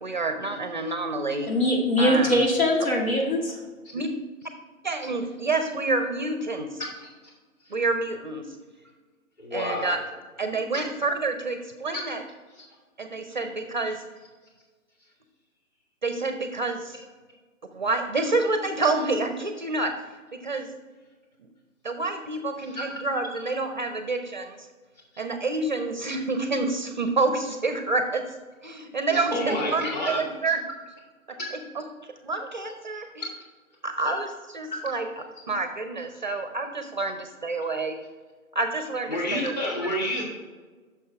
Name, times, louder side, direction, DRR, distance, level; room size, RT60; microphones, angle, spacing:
voice 1, 0.0-1.5 2.0-2.5 3.9-4.1 4.8-6.8 7.7-8.6 9.5-10.0 10.4-12.2 13.0-14.0 16.0-17.0 17.7-19.9 20.3-20.7 21.4-21.5 21.8-24.7 25.2-28.2 28.6-30.6 31.5-31.8 32.2-33.3 33.8-38.0 38.5-39.7, right 3 dB, 35° right, 7 dB, 0.5 m, -28 dB
voice 2, 1.4-3.6, left 1 dB, 75° left, -1 dB, 2.2 m, -22 dB
voice 3, 9.4-9.9 22.7-22.8 29.1-30.2 36.1-36.2 39.1-40.2, left 1 dB, 30° left, -2 dB, 2.2 m, -29 dB
9.2 x 6.4 x 3.4 m, 1.4 s
figure-of-eight pair, 140°, 42 cm